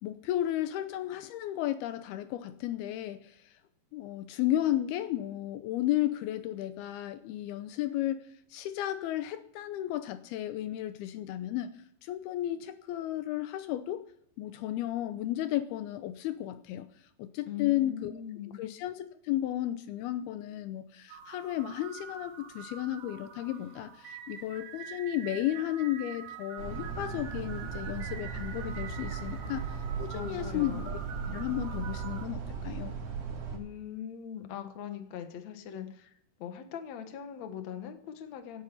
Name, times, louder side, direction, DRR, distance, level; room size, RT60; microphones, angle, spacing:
voice 1, 0.0-3.5 3.9-8.2 8.5-11.7 12.0-14.0 14.4-16.9 17.2-18.1 18.6-31.0 31.3-32.9, left 13 dB, 85° left, 11 dB, 2.7 m, -33 dB
voice 2, 17.5-18.6 30.1-30.9 33.5-36.1 36.4-38.6, left 9 dB, 55° left, 7 dB, 2.4 m, -41 dB
sound 1, 21.1-32.3, right 8 dB, 65° right, 2.3 m, -46 dB
sound 2, 26.6-33.6, right 6 dB, 85° right, 5.5 m, -37 dB
17.5 x 9.0 x 7.1 m, 0.72 s
omnidirectional pair, 4.5 m